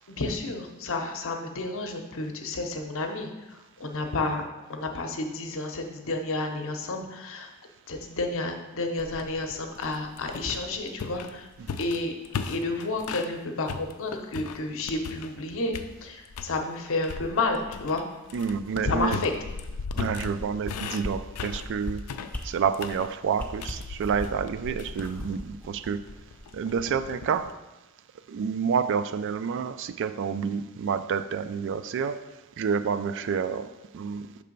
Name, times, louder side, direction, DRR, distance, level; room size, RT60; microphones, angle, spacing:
voice 1, 0.1-4.4 4.7-7.5 7.9-11.5 11.8-12.1 12.5-15.7 16.0-18.0 18.8-19.3, left 2 dB, 60° left, 0.8 m, -31 dB
sound 1, 9.0-13.4 13.7-15.4 15.7-16.6 17.0-27.5, left 5 dB, 90° left, 0.4 m, -38 dB
voice 2, 18.3-19.2 20.0-22.0 22.4-26.0 26.5-27.5 28.3-32.3 32.6-34.4, right 6 dB, 55° right, 0.3 m, -29 dB
sound 2, 19.7-20.7 21.0-21.1 21.5-21.9 22.3-22.4 22.8-23.0 23.3-24.5 24.8-26.4 26.8-26.9, left 1 dB, 10° left, 0.6 m, -36 dB
6.6 x 3.3 x 5.2 m
head